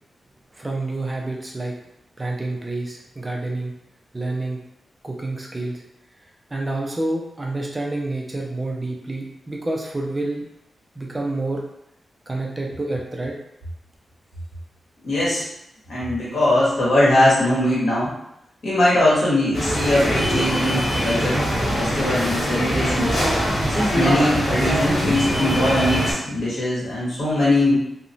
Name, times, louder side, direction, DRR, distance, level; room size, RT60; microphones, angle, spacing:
voice 1, 0.5-1.7 2.2-3.7 4.1-4.6 5.0-5.8 6.5-10.4 11.0-11.6 12.3-13.4, right 2 dB, 20° right, -1 dB, 0.3 m, -28 dB
voice 2, 15.0-15.4 15.9-18.1 18.6-21.4 21.8-23.2 23.7-27.8, left 1 dB, 65° left, -8 dB, 1.3 m, -21 dB
sound 1, 19.5-26.1, equal, 50° left, 1.5 m, -22 dB
2.8 x 2.0 x 2.6 m, 0.79 s
wide cardioid pair, 160°, 0 cm